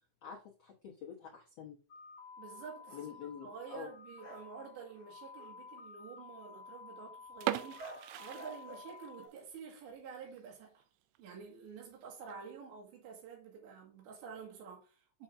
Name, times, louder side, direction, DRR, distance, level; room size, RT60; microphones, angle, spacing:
voice 1, 0.2-1.8 2.9-3.9, left 7 dB, 85° left, 1.4 m, -47 dB
sound 1, 1.9-9.3, left 5 dB, 20° left, 2.1 m, -53 dB
sound 2, 2.4-3.2 4.2-4.6 4.9-5.6 7.8-9.4, right 2 dB, 15° right, 0.4 m, -52 dB
voice 2, 2.4-3.0 3.4-10.8 11.2-15.2, right 6 dB, 75° right, 4.2 m, -49 dB
sound 3, 7.3-9.2 9.6-9.7 10.2-10.4 10.8-10.9 11.2-11.3 12.0-12.3, right 15 dB, 90° right, 3.0 m, -39 dB
7.6 x 6.9 x 2.7 m
omnidirectional pair, 5.3 m